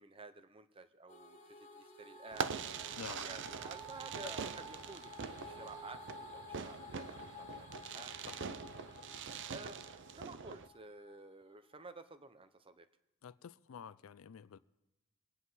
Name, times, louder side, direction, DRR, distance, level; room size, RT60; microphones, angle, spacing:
voice 1, 0.0-2.5 3.1-8.1 9.5-12.9, right 3 dB, 25° right, 0.7 m, -52 dB
sound 1, 1.1-11.3, left 1 dB, 35° left, 1.4 m, -52 dB
Fireworks, 2.3-10.7, right 6 dB, 60° right, 0.5 m, -44 dB
voice 2, 2.9-3.3 8.3-8.6 13.2-14.6, left 7 dB, 75° left, 0.4 m, -49 dB
24.5 x 9.6 x 4.0 m
head